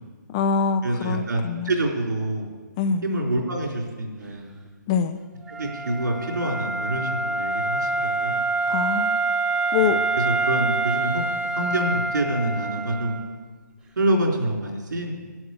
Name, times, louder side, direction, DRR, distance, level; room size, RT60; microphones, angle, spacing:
voice 1, 0.3-1.7 2.8-3.0 4.9-5.2 8.7-9.2 9.7-10.0, left 6 dB, 15° left, 10 dB, 0.3 m, -24 dB
voice 2, 0.8-2.5 3.0-4.5 5.5-8.4 9.8-9.9 10.2-11.2 11.6-13.2 14.0-15.1, right 1 dB, 75° right, 0 dB, 4.1 m, -26 dB
Wind instrument woodwind instrument, 5.5-13.3, right 3 dB, 10° right, 1.0 m, -26 dB
10.5 x 9.2 x 8.1 m, 1.4 s
hypercardioid pair, 155°, 10 cm